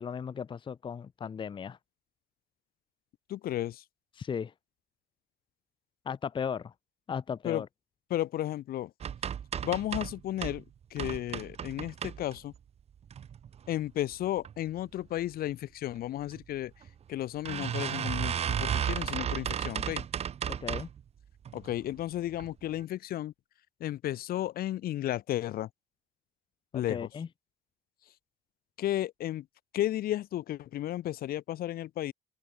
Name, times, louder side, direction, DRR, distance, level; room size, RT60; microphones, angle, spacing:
voice 1, 0.0-1.8 4.2-4.5 6.1-6.7 7.1-7.7 20.5-20.9 26.7-27.3, left 7 dB, 30° left, 0.7 m, -36 dB
voice 2, 3.3-3.8 7.4-7.6 8.1-8.9 9.6-10.6 10.9-12.5 13.7-16.7 17.1-20.0 21.5-23.3 23.8-25.7 26.7-27.1 28.8-29.5 29.7-32.1, left 13 dB, 60° left, 0.9 m, -33 dB
sound 1, 9.0-10.6 11.0-12.6 13.1-13.7 14.1-14.5 14.8-14.9 15.2-15.3 16.3-16.4 16.8-16.9 17.5-21.0 21.5-21.9 22.3-22.5 22.8-22.9, right 8 dB, 40° right, 0.7 m, -34 dB
cardioid pair, 110°, 17 cm